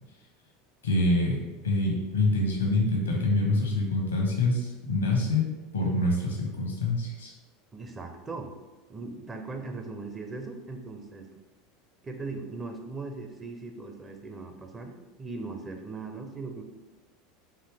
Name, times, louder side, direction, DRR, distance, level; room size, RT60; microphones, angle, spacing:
voice 1, 0.8-5.4 5.7-7.3, left 2 dB, 85° left, 0 dB, 1.0 m, -26 dB
voice 2, 7.7-8.5 8.9-11.3 12.0-16.6, right 3 dB, 20° right, 4 dB, 0.6 m, -39 dB
4.8 x 2.7 x 3.6 m, 1.1 s
figure-of-eight pair, 80°, 0 cm